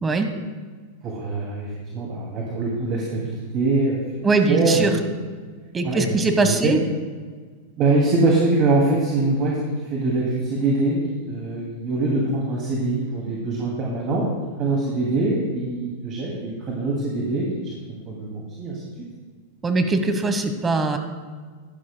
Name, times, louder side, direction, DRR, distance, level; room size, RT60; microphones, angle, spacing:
voice 1, 1.0-4.9 5.8-6.1 6.6-6.8 7.8-9.6 9.9-11.0 11.3-14.3 14.6-17.8 18.1-18.8, right 2 dB, 40° right, -3 dB, 2.4 m, -23 dB
voice 2, 4.2-4.9 5.7-6.8 19.6-21.0, right 3 dB, 15° right, 7 dB, 1.1 m, -21 dB
15.5 x 11.5 x 2.2 m, 1.5 s
supercardioid pair, 130°, 0 cm